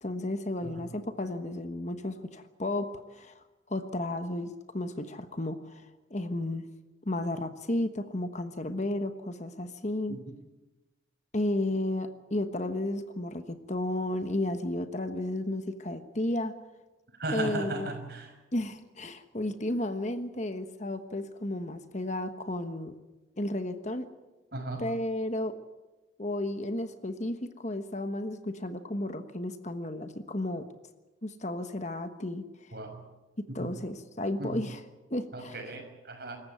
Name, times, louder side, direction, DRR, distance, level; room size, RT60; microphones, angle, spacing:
voice 1, 0.0-3.3 3.7-5.8 6.1-6.7 7.0-10.2 11.3-16.5 17.3-17.9 18.5-23.0 23.4-24.1 24.8-25.5 26.2-30.7 31.2-32.4 33.5-34.8 35.1-35.6, left 1 dB, 35° left, 9 dB, 1.3 m, -33 dB
voice 2, 17.2-18.3 24.5-24.9 32.7-33.0 33.5-33.7 34.4-34.6 35.3-36.4, right 2 dB, 50° right, 4 dB, 5.9 m, -36 dB
26.5 x 14.5 x 9.4 m, 1.1 s
head